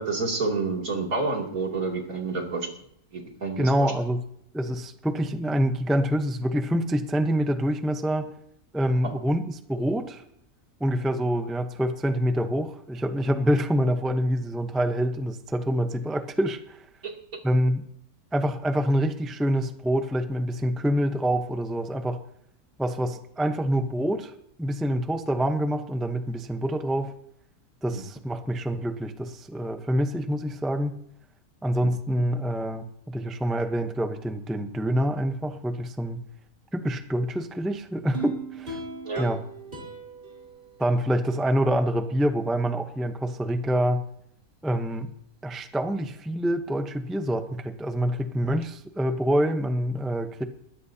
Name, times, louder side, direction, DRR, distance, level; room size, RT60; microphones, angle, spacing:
voice 1, 0.0-2.7 3.1-3.7 27.9-28.0 39.0-39.2, right 3 dB, 70° right, 0 dB, 3.3 m, -28 dB
voice 2, 3.6-4.2 4.5-8.3 8.7-10.2 10.8-16.8 17.4-17.8 18.3-22.2 22.8-24.3 24.6-27.1 27.8-31.0 31.6-36.2 36.7-38.8 39.2-39.4 40.8-44.0 44.6-45.1 45.4-50.4, equal, ahead, 7 dB, 0.6 m, -26 dB
sound 1, 38.1-41.4 41.9-42.0, right 4 dB, 35° right, 4.1 m, -38 dB
21.0 x 16.0 x 2.8 m, 0.71 s
omnidirectional pair, 1.6 m